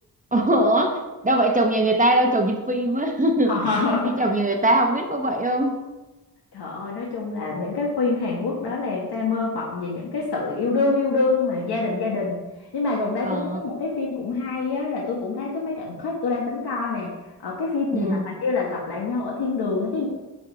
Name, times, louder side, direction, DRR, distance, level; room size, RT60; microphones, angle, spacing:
voice 1, 0.3-3.6 3.8-5.8 13.2-13.6 17.9-18.2, right 1 dB, 20° right, 3 dB, 0.8 m, -21 dB
voice 2, 3.5-4.2 6.5-12.4 12.7-17.1 17.4-20.1, left 3 dB, 85° left, -3 dB, 1.3 m, -26 dB
9.5 x 3.6 x 4.9 m, 1.1 s
wide cardioid pair, 115°, 38 cm